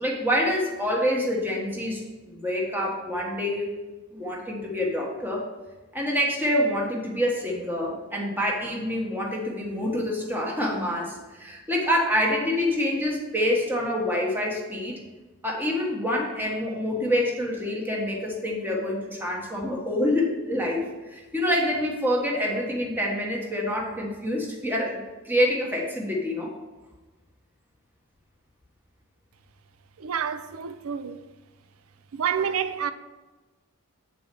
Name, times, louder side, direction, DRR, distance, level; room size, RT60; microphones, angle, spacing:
voice 1, 0.0-3.7 4.1-5.5 5.9-15.0 15.4-20.8 21.1-26.5, left 1 dB, 10° right, 1.4 m, -26 dB
voice 2, 30.0-31.2 32.1-32.9, right 7 dB, 75° right, 0.5 m, -28 dB
8.9 x 4.2 x 5.3 m
head